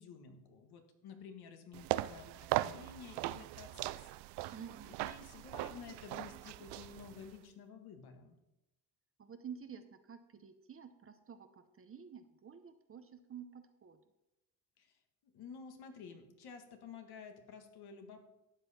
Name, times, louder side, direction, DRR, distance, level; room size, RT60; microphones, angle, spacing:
voice 1, 0.0-4.1 4.4-4.5 5.0-8.4 14.8-18.3, left 6 dB, 65° left, 5 dB, 1.7 m, -52 dB
sound 1, 1.7-7.4, right 16 dB, 80° right, 0.5 m, -39 dB
voice 2, 4.5-5.0 9.2-14.0 15.7-15.9, right 7 dB, 35° right, 8 dB, 0.8 m, -51 dB
12.5 x 7.6 x 4.3 m, 0.94 s
cardioid pair, 110°, 40 cm